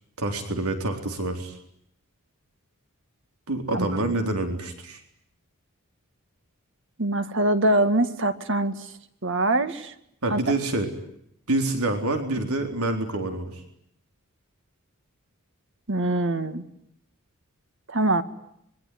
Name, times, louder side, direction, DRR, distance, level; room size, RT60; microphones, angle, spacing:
voice 1, 0.2-1.5 3.5-5.0 10.2-10.9 11.5-13.5, right 2 dB, 90° right, 5 dB, 4.2 m, -27 dB
voice 2, 3.7-4.1 7.0-8.8 9.2-9.9 10.3-10.4 15.9-16.6 17.9-18.2, right 2 dB, 60° right, 10 dB, 2.1 m, -23 dB
26.0 x 23.5 x 9.5 m, 0.75 s
head